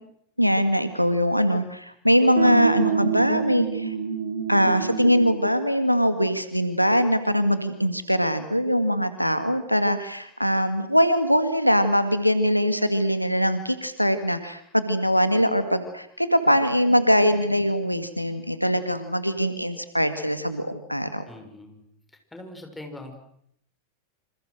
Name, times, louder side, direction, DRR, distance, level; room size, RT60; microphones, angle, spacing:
voice 1, 0.4-3.9 4.5-21.2, equal, 90° left, 10 dB, 2.0 m, -22 dB
sound 1, 2.4-5.5, right 6 dB, 65° right, 3.7 m, -26 dB
voice 2, 21.3-21.8 22.3-23.2, left 1 dB, 5° left, 4 dB, 6.3 m, -41 dB
27.5 x 27.0 x 6.5 m, 0.71 s
figure-of-eight pair, 90°, 0 cm